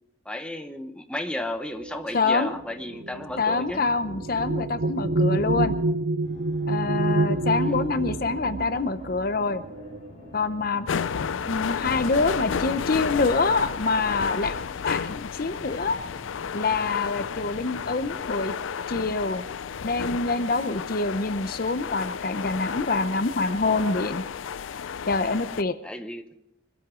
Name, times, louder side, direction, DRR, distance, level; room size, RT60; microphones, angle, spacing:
voice 1, 0.2-3.9 7.5-7.8 25.8-26.2, left 1 dB, 5° left, 6 dB, 0.8 m, -34 dB
sound 1, 1.7-10.6 11.5-11.7 12.0-12.6, right 2 dB, 70° right, 0.6 m, -28 dB
voice 2, 2.1-2.6 3.4-5.8 6.7-9.6 10.3-10.9 11.5-16.0 16.5-18.5 18.9-19.5 19.8-24.2 25.1-25.8, left 3 dB, 50° left, 11 dB, 0.7 m, -26 dB
Fixed-wing aircraft airplane, 6.2-18.2, left 1 dB, 35° left, 7.2 m, -48 dB
sound 2, 10.9-25.6, left 6 dB, 90° left, 0.4 m, -32 dB
24.0 x 13.0 x 3.7 m, 0.82 s
head